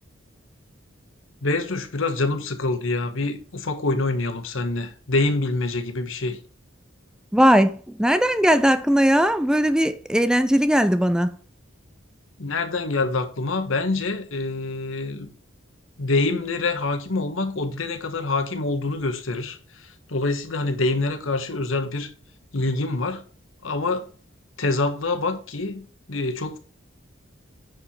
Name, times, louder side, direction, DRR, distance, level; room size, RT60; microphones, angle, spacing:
voice 1, 1.4-6.4 12.4-15.3 16.0-19.6 20.1-22.1 22.5-23.2 23.6-24.1 24.6-26.6, left 3 dB, 85° left, 1.3 m, -25 dB
voice 2, 7.3-11.3, equal, 5° right, 0.4 m, -19 dB
9.7 x 4.8 x 4.3 m
head